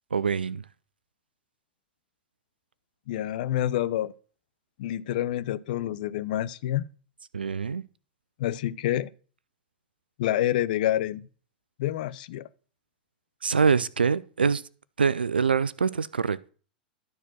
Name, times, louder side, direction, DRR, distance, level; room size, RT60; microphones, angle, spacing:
voice 1, 0.1-0.7 7.3-7.8 13.4-14.6 15.0-16.5, right 5 dB, 90° right, 0.5 m, -25 dB
voice 2, 3.1-4.1 4.8-6.8 8.4-9.1 10.2-11.2 11.8-12.5, left 12 dB, 60° left, 0.7 m, -27 dB
12.0 x 4.2 x 6.2 m
hypercardioid pair, 100°, 5 cm